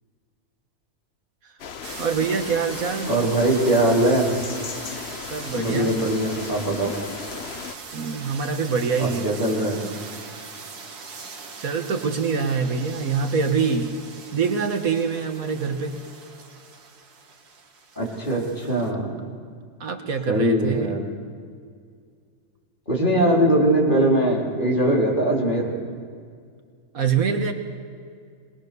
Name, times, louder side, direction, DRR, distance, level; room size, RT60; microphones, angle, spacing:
sound 1, 1.6-7.7, left 7 dB, 50° left, 0.9 m, -36 dB
sound 2, 1.8-18.9, right 4 dB, 85° right, 2.1 m, -40 dB
voice 1, 2.0-3.1 5.3-5.9 7.9-9.3 11.6-13.9 14.3-16.0 19.8-21.1 26.9-27.5, right 5 dB, 65° right, 6 dB, 1.7 m, -24 dB
voice 2, 3.1-4.3 5.5-6.9 9.0-9.8 18.0-19.1 20.3-21.0 22.9-25.7, right 1 dB, 30° left, -3 dB, 3.9 m, -21 dB
21.5 x 20.5 x 6.7 m, 2.1 s
omnidirectional pair, 1.6 m